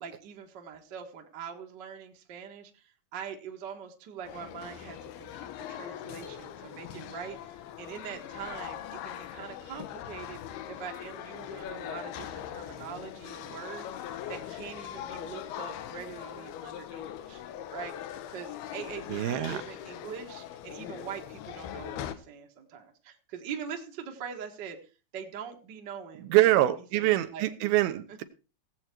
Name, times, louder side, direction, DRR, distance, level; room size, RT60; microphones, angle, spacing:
voice 1, 0.0-10.4 10.7-17.4 17.7-18.0 18.3-24.8 25.1-27.5 28.1-28.2, right 7 dB, 50° right, 1.3 m, -43 dB
sound 1, 4.2-22.2, left 11 dB, 80° left, 2.9 m, -41 dB
voice 2, 19.1-19.6 26.3-28.2, right 15 dB, 80° right, 2.8 m, -24 dB
18.0 x 7.9 x 4.5 m
omnidirectional pair, 4.4 m